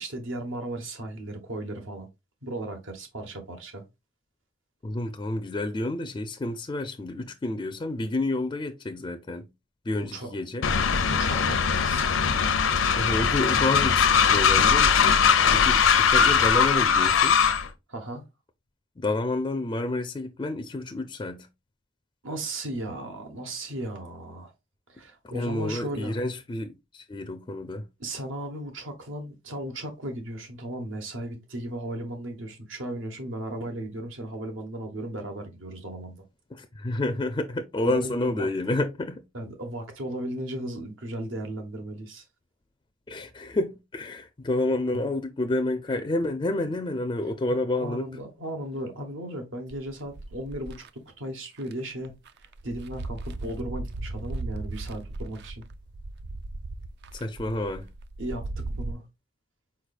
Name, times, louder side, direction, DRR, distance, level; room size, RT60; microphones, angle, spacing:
voice 1, 0.0-2.1 2.4-3.8 10.0-10.3 11.1-12.1 17.9-18.2 22.2-24.5 24.9-26.2 28.0-36.2 37.8-38.5 39.3-42.2 44.9-45.1 47.5-55.7 58.2-59.0, right 1 dB, 80° right, 1.3 m, -36 dB
voice 2, 4.8-9.5 9.8-10.7 12.9-15.2 15.5-17.4 19.0-21.5 25.2-27.9 36.5-39.2 43.1-48.1 57.1-57.9, left 2 dB, 25° left, 0.4 m, -29 dB
Train, 10.6-17.7, left 6 dB, 85° left, 0.6 m, -21 dB
sound 1, 49.7-50.9 51.6-51.7 52.1-58.9, right 2 dB, 55° right, 0.4 m, -37 dB
4.7 x 4.4 x 2.4 m
head